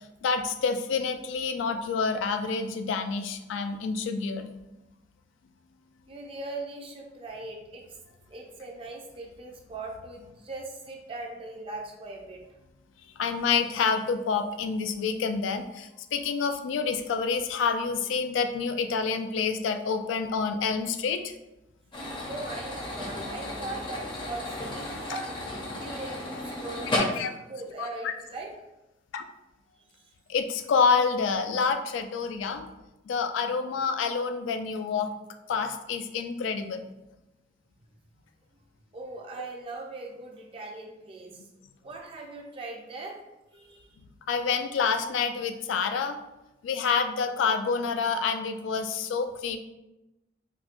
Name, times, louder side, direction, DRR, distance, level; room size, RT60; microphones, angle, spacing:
voice 1, 0.2-4.5 13.2-21.3 25.1-25.2 27.2-27.3 27.8-27.9 29.1-29.2 30.3-32.7 33.1-35.1 35.5-36.8 44.3-46.2 46.6-49.6, left 5 dB, 85° left, 7 dB, 0.3 m, -28 dB
voice 2, 6.1-7.8 8.3-12.4 22.2-27.1 27.5-28.5 38.9-41.4 41.8-43.2 43.5-44.0, right 2 dB, 30° right, 0 dB, 0.4 m, -40 dB
sound 1, 21.9-27.0, left 1 dB, 25° left, 0.5 m, -34 dB
4.3 x 2.1 x 2.4 m, 0.97 s
head